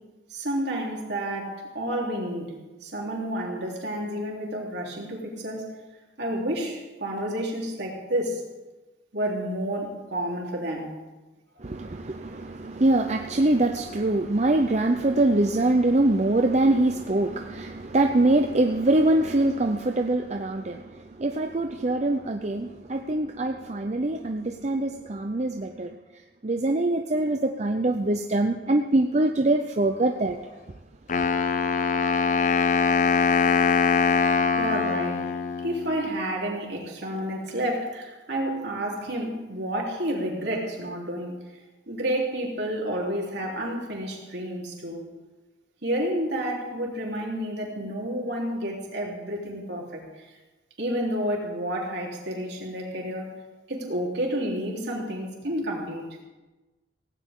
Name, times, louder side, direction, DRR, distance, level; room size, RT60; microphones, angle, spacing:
voice 1, 0.3-5.7 6.2-8.4 9.1-11.0 34.5-35.3 35.6-41.4 41.9-45.1 45.8-50.3 50.8-53.3 53.7-56.1, right 1 dB, 65° right, -2 dB, 3.6 m, -30 dB
voice 2, 11.6-26.0 26.4-30.4, right 2 dB, 40° right, 5 dB, 0.7 m, -24 dB
Wind instrument woodwind instrument, 31.1-36.1, left 5 dB, 45° left, 0.7 m, -23 dB
17.0 x 17.0 x 3.8 m, 1.2 s
head